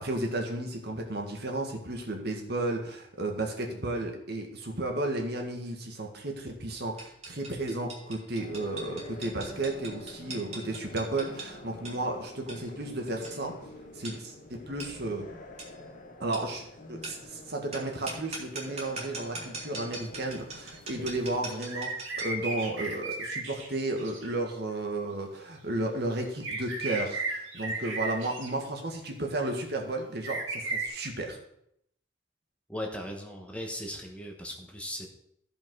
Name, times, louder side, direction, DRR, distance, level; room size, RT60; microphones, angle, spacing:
voice 1, 0.0-13.5 13.9-15.2 16.2-31.4, right 2 dB, 60° right, 2 dB, 1.7 m, -33 dB
sound 1, 7.0-22.4, right 3 dB, 35° right, 2.3 m, -43 dB
sound 2, 8.4-21.5, left 1 dB, 45° left, 1.1 m, -47 dB
sound 3, 21.7-24.3 26.2-28.5 30.2-30.9, right 3 dB, 85° right, 2.0 m, -35 dB
voice 2, 32.7-35.1, left 1 dB, 5° left, 1 dB, 1.1 m, -38 dB
14.0 x 5.4 x 4.7 m, 0.74 s
head